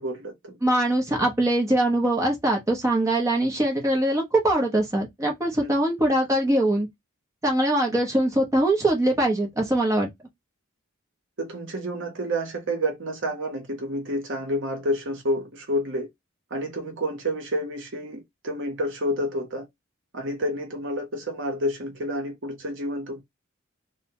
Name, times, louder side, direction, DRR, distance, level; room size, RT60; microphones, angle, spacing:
voice 1, 0.0-0.5 5.6-5.7 11.4-16.1 16.5-19.7 20.1-23.2, equal, 60° right, 0.8 m, -29 dB
voice 2, 0.6-6.9 7.4-10.1, right 1 dB, 15° right, 0.7 m, -22 dB
2.8 x 2.1 x 2.8 m
head